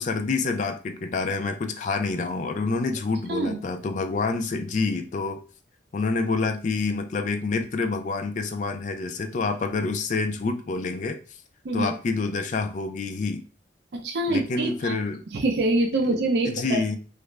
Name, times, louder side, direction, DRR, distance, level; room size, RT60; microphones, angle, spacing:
voice 1, 0.0-5.4 5.9-11.2 11.7-13.4 14.3-15.2 16.4-17.0, left 3 dB, 40° left, 7 dB, 0.3 m, -27 dB
voice 2, 13.9-15.0 15.3-16.8, right 2 dB, 60° right, 4 dB, 0.4 m, -25 dB
2.3 x 2.1 x 3.1 m, 0.38 s
head